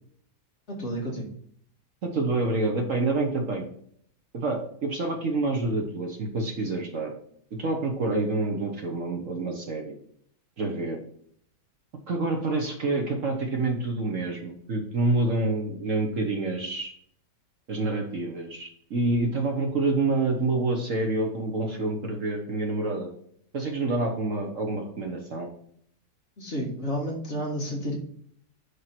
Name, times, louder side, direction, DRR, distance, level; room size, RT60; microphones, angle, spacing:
voice 1, 0.8-1.3 26.4-28.0, equal, 40° left, -1 dB, 1.9 m, -31 dB
voice 2, 2.0-3.6 4.3-7.1 7.5-9.9 10.6-11.0 12.1-16.9 17.7-23.1 23.5-25.5, right 2 dB, 50° right, 2 dB, 1.3 m, -27 dB
9.9 x 3.7 x 4.5 m, 0.64 s
omnidirectional pair, 1.9 m